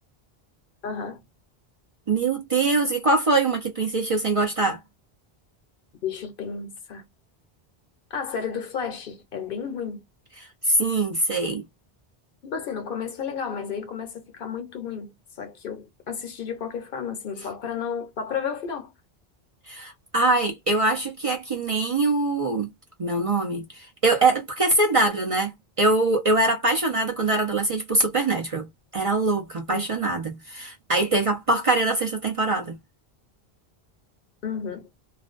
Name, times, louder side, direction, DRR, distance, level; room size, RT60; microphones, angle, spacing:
voice 1, 0.8-1.2 6.0-7.1 8.1-10.0 12.4-18.9 29.7-29.8 34.4-34.9, left 6 dB, 60° left, 0.8 m, -32 dB
voice 2, 2.1-4.8 10.6-11.6 19.7-22.7 23.0-28.7 28.9-32.8, right 2 dB, 40° right, 0.6 m, -23 dB
2.5 x 2.1 x 2.4 m
omnidirectional pair, 1.0 m